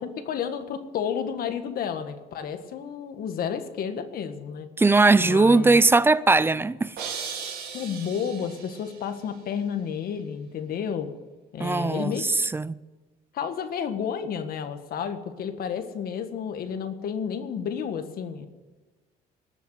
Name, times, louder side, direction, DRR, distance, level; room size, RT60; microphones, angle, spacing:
voice 1, 0.0-4.7 5.2-5.8 7.7-11.1 11.5-12.4 13.3-18.5, left 7 dB, 60° left, 1.7 m, -31 dB
voice 2, 4.8-6.9 11.6-12.3 12.5-12.8, right 3 dB, 15° right, 0.4 m, -19 dB
sound 1, 7.0-9.0, right 6 dB, 70° right, 4.0 m, -37 dB
19.5 x 7.1 x 9.3 m
cardioid pair, 110°, 17 cm